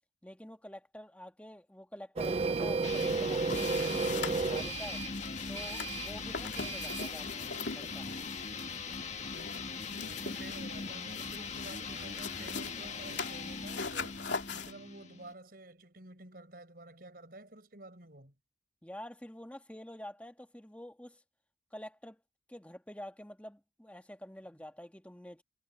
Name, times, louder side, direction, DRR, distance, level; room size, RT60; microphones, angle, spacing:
voice 1, 0.2-5.0 5.5-8.1 18.8-21.2 21.7-22.2 22.5-25.4, equal, 5° left, 1.4 m, -48 dB
Printer, 2.2-7.2, right 4 dB, 35° right, 0.4 m, -33 dB
sound 1, 2.8-15.3, left 5 dB, 40° left, 1.8 m, -41 dB
sound 2, 2.9-14.7, left 4 dB, 75° left, 2.7 m, -42 dB
voice 2, 10.1-14.2 14.5-18.3, right 2 dB, 55° right, 5.3 m, -51 dB
head